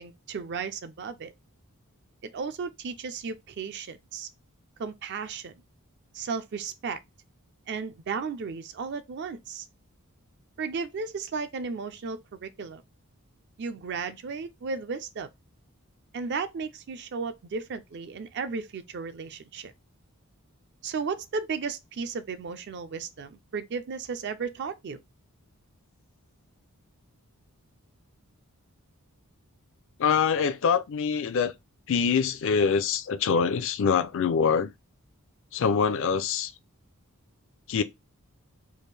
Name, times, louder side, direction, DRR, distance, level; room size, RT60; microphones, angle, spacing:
voice 1, 0.0-1.3 2.2-4.3 4.8-5.5 6.1-7.0 7.7-9.7 10.6-12.8 13.6-15.3 16.1-19.7 20.8-25.0, right 5 dB, 50° right, 0.4 m, -34 dB
voice 2, 30.0-31.5 31.9-34.7 35.5-36.5 37.7-37.8, left 6 dB, 60° left, 0.4 m, -24 dB
3.4 x 2.4 x 3.3 m
head